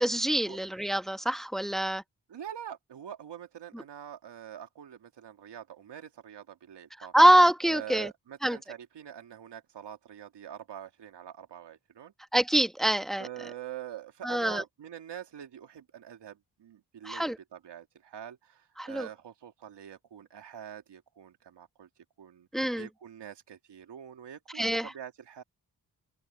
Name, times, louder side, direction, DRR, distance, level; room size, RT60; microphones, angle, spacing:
voice 1, 0.0-2.0 7.1-8.1 8.4-8.6 12.3-13.3 14.2-14.6 17.0-17.4 18.8-19.1 22.5-22.9 24.5-24.9, right 1 dB, ahead, 1.5 m, -24 dB
voice 2, 2.3-7.1 7.7-12.1 13.2-21.9 22.2-25.4, right 10 dB, 75° right, 2.7 m, -45 dB
open air
supercardioid pair, 40°, 41 cm